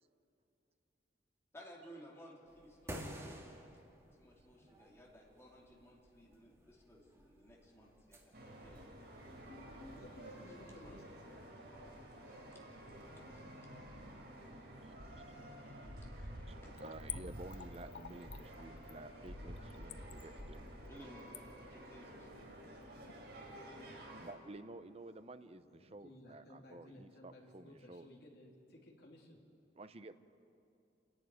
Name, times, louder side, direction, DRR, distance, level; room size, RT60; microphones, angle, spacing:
voice 1, 1.5-3.5 4.2-8.8 10.3-11.1 12.1-12.2 12.5-12.6 13.3-13.4 16.0-16.3 16.6-16.7 20.2-20.3 20.8-22.4, equal, 15° left, -3 dB, 2.7 m, -58 dB
sound 1, 2.5-10.9, equal, 15° right, 2.1 m, -54 dB
sound 2, 8.3-24.3, equal, 60° right, 3.6 m, -51 dB
voice 2, 9.8-11.4 19.2-19.7 25.7-29.4, left 1 dB, 60° left, -2 dB, 3.2 m, -58 dB
Splash splatter / Trickle dribble, 16.8-23.2 23.5-23.6, left 11 dB, 75° left, 0.8 m, -51 dB
voice 3, 16.8-20.6 24.2-28.1 29.8-30.1, right 2 dB, 35° right, 11 dB, 0.7 m, -52 dB
28.5 x 11.5 x 9.3 m, 2.6 s
head